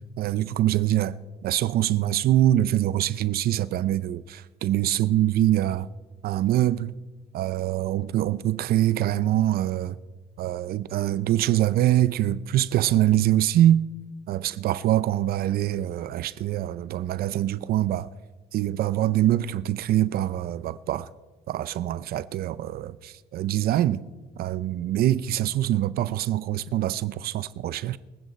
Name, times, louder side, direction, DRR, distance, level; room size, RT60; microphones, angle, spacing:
voice 1, 0.2-1.1 1.4-5.9 6.2-7.0 7.3-10.0 10.4-13.8 14.3-18.1 18.5-21.1 21.5-24.0 24.4-28.0, right 13 dB, 65° right, 0.6 m, -24 dB
25.0 x 9.2 x 4.3 m
cardioid pair, 110°, 17 cm